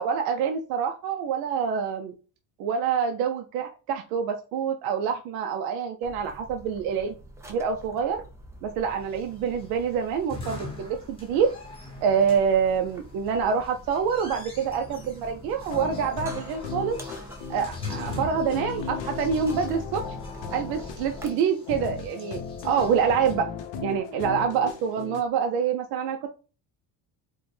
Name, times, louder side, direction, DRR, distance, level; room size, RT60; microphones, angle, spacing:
voice 1, 0.0-2.1 2.6-7.1 7.5-8.2 8.6-11.5 12.0-17.0 17.5-20.0 20.5-22.4 22.6-23.5 23.8-26.3, right 7 dB, 60° right, 5 dB, 0.5 m, -26 dB
sound 1, 6.0-21.3, equal, 5° right, 0.3 m, -45 dB
sound 2, 9.0-23.3, left 3 dB, 15° left, 0.9 m, -44 dB
sound 3, 15.7-25.2, left 6 dB, 70° left, 0.7 m, -36 dB
4.3 x 2.2 x 3.1 m, 0.35 s
cardioid pair, 150°, 42 cm